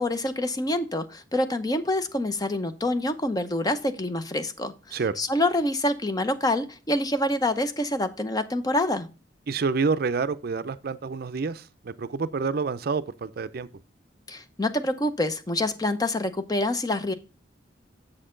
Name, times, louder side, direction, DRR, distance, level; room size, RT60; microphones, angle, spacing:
voice 1, 0.0-9.1 14.3-17.1, left 1 dB, 20° left, 0.7 m, -26 dB
voice 2, 9.5-13.7, right 4 dB, 55° right, 0.5 m, -28 dB
7.4 x 6.6 x 3.7 m
head